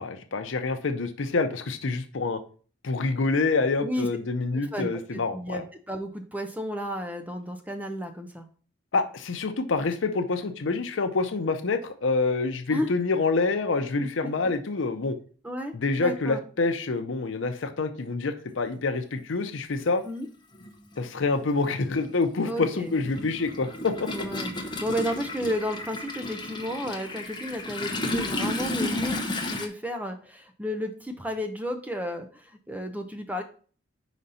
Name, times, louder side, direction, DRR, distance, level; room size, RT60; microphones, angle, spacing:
voice 1, 0.0-2.4 2.8-5.6 8.9-15.1 15.7-20.0 21.0-24.1, left 3 dB, 85° left, 7 dB, 0.6 m, -27 dB
voice 2, 4.7-8.5 12.7-12.9 15.4-16.4 20.0-20.3 22.4-22.9 24.1-24.5 24.8-33.4, equal, 10° right, 6 dB, 0.5 m, -32 dB
Toilet flush, 19.2-19.3 20.5-20.7 21.0-29.7, left 2 dB, 25° left, 0.7 m, -32 dB
5.1 x 4.1 x 5.5 m, 0.42 s
head